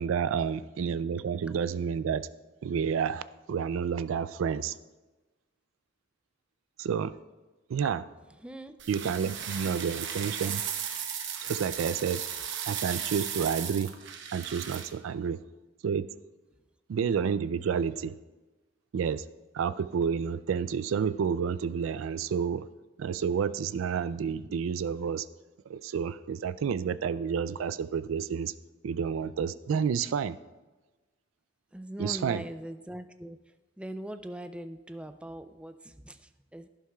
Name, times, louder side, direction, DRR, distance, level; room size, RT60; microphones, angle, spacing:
voice 1, 0.0-2.3 2.6-4.8 6.8-7.1 7.7-8.0 8.9-10.6 11.4-12.2 12.7-13.9 14.3-15.4 15.8-16.1 16.9-18.1 18.9-19.2 19.5-22.7 23.0-25.3 25.7-28.5 28.8-30.4 32.0-32.4, right 7 dB, 85° right, 15 dB, 0.3 m, -30 dB
voice 2, 8.4-8.8 29.7-29.8 31.7-33.4 33.8-36.7, right 1 dB, 5° right, 9 dB, 0.4 m, -41 dB
sound 1, 8.8-14.9, right 8 dB, 65° right, 0.9 m, -36 dB
11.0 x 11.0 x 2.3 m, 1.2 s
head